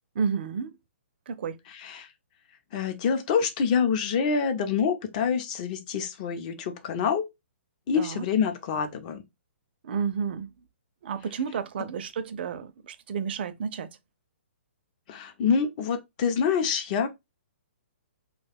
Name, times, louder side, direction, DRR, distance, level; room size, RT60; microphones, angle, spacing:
voice 1, 0.2-0.8 1.3-1.6 7.9-8.2 9.8-10.5 11.0-13.9, right 6 dB, 50° right, 0.4 m, -31 dB
voice 2, 1.7-2.1 2.7-7.3 7.9-9.2 15.1-17.1, left 6 dB, 35° left, 0.6 m, -26 dB
2.4 x 2.2 x 3.3 m
hypercardioid pair, 150°, 7 cm